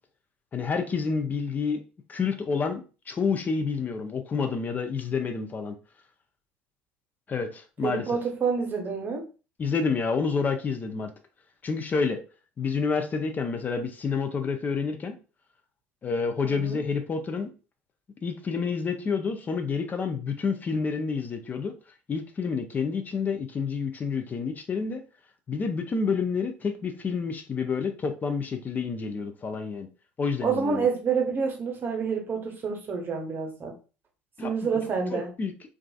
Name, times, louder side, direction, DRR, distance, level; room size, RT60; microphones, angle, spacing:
voice 1, 0.5-1.8 2.1-5.8 7.3-8.0 9.6-11.1 11.6-12.2 12.6-15.2 16.0-17.5 18.2-21.7 22.1-25.0 25.5-29.9 30.2-30.9 34.4-34.7 35.1-35.5, left 5 dB, 30° left, 6 dB, 0.4 m, -29 dB
voice 2, 7.8-9.2 16.4-16.8 30.4-33.7 34.4-35.3, right 5 dB, 35° right, 2 dB, 0.8 m, -28 dB
2.3 x 2.3 x 2.3 m, 0.34 s
hypercardioid pair, 65°, 6 cm